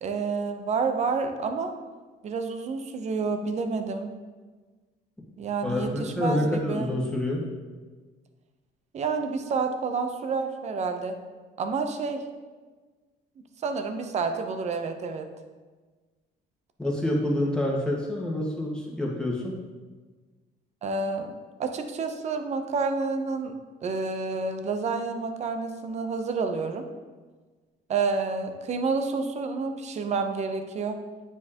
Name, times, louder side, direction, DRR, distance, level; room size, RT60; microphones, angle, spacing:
voice 1, 0.0-1.7 2.2-4.2 5.4-6.9 8.9-11.2 11.6-12.2 13.6-15.3 20.8-21.3 21.6-23.5 23.8-26.8 27.9-31.0, right 4 dB, 40° right, 6 dB, 0.7 m, -29 dB
voice 2, 5.6-7.4 16.8-19.5, left 1 dB, 5° left, -3 dB, 1.5 m, -27 dB
9.4 x 4.6 x 2.9 m, 1.3 s
cardioid pair, 110°, 17 cm